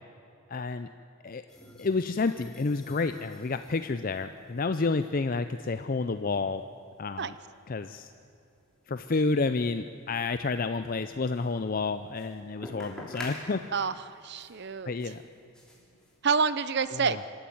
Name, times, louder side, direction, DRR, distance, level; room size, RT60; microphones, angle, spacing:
voice 1, 0.5-0.9 1.2-1.4 1.8-6.6 7.0-7.3 7.7-8.1 8.9-13.6 14.9-15.2 16.9-17.2, left 3 dB, 40° left, 10 dB, 0.5 m, -30 dB
sound 1, 1.5-16.5, left 1 dB, 5° left, 3.2 m, -50 dB
voice 2, 13.7-14.9 16.2-17.2, right 5 dB, 50° right, 14 dB, 0.7 m, -28 dB
25.5 x 13.0 x 9.3 m, 2.7 s
head